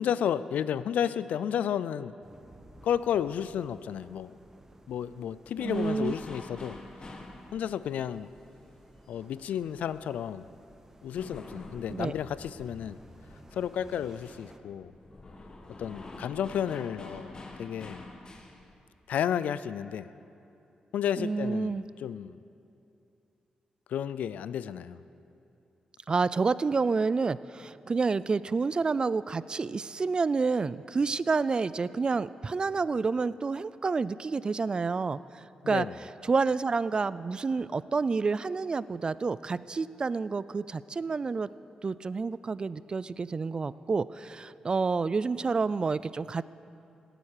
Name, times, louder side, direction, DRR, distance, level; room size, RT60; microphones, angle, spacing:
voice 1, 0.0-2.2 2.8-4.3 4.9-6.8 7.5-8.3 9.1-10.5 11.0-13.0 13.5-14.9 15.8-18.0 19.1-20.1 20.9-22.4 23.9-25.0 35.6-35.9, left 9 dB, 90° left, 16 dB, 0.4 m, -32 dB
sound 1, 2.2-14.6, right 1 dB, 20° right, 1.1 m, -56 dB
sound 2, 5.6-9.9 10.2-18.8, left 2 dB, 35° left, 1.5 m, -47 dB
voice 2, 5.6-6.1 11.9-12.1 21.2-21.8 26.1-35.2 35.7-35.9 36.2-41.5 41.8-46.4, right 4 dB, 35° right, 17 dB, 0.4 m, -29 dB
17.5 x 9.1 x 6.6 m, 2.7 s
cardioid pair, 85°, 2 cm